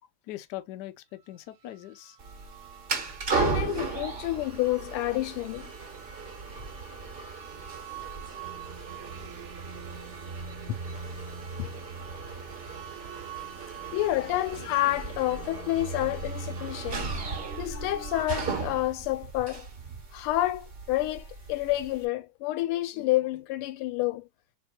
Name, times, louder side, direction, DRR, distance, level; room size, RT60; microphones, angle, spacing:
voice 1, 0.3-2.2 17.4-17.5, left 15 dB, 70° left, 1.0 m, -41 dB
sound 1, 2.1-18.3, right 5 dB, 70° right, 0.7 m, -43 dB
sound 2, 2.2-22.0, right 4 dB, 35° right, 1.1 m, -37 dB
voice 2, 3.3-5.7 10.7-10.8 11.6-11.7 13.0-13.2 13.9-17.1 17.6-19.7 20.1-24.3, left 16 dB, 90° left, 1.5 m, -29 dB
4.2 x 3.5 x 2.2 m
omnidirectional pair, 2.3 m